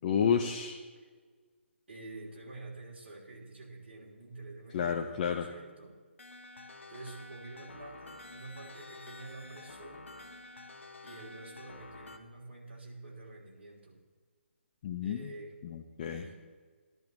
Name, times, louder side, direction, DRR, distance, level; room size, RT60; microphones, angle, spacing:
voice 1, 0.0-0.8 4.7-5.5 14.8-15.3 15.6-16.2, left 7 dB, 35° left, 3 dB, 0.7 m, -30 dB
voice 2, 1.9-6.0 6.9-10.1 11.0-14.0 15.0-15.6 16.1-16.3, right 2 dB, 65° right, -2 dB, 3.3 m, -48 dB
sound 1, 6.2-12.2, left 2 dB, 75° left, 1.0 m, -49 dB
15.0 x 11.0 x 3.2 m, 1.5 s
figure-of-eight pair, 145°, 7 cm